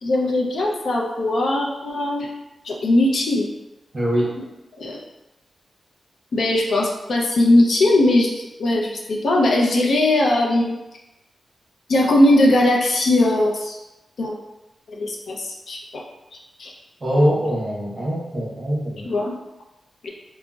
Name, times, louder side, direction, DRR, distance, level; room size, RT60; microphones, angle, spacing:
voice 1, 0.0-2.3 2.6-3.5 4.4-4.5 4.8-5.0 6.3-10.8 11.9-13.8 14.2-14.4 14.9-16.0 16.6-16.7 19.0-19.3 20.0-20.1, left 1 dB, 70° left, -1 dB, 0.4 m, -19 dB
voice 2, 3.9-4.3 17.0-19.1, equal, 25° right, -5 dB, 0.8 m, -22 dB
3.7 x 2.0 x 2.3 m, 0.95 s
wide cardioid pair, 175°, 0 cm